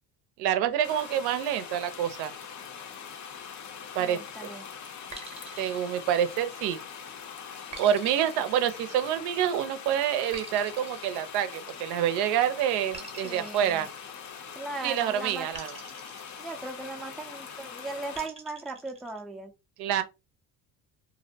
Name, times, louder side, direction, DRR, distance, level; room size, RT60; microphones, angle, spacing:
voice 1, 0.4-2.3 4.0-4.5 5.6-6.8 7.8-13.9 14.8-15.7 19.8-20.0, right 10 dB, 75° right, 0.5 m, -27 dB
sound 1, 0.8-18.3, left 7 dB, 45° left, 0.6 m, -43 dB
voice 2, 4.0-4.7 13.2-13.9 14.5-15.5 16.4-19.5, right 3 dB, ahead, 0.3 m, -38 dB
sound 2, 5.1-6.8 7.7-9.4 10.3-12.0 12.9-14.7 15.5-17.1 18.1-19.2, right 3 dB, 15° right, 0.7 m, -47 dB
2.5 x 2.0 x 2.7 m
supercardioid pair, 90°, 40 cm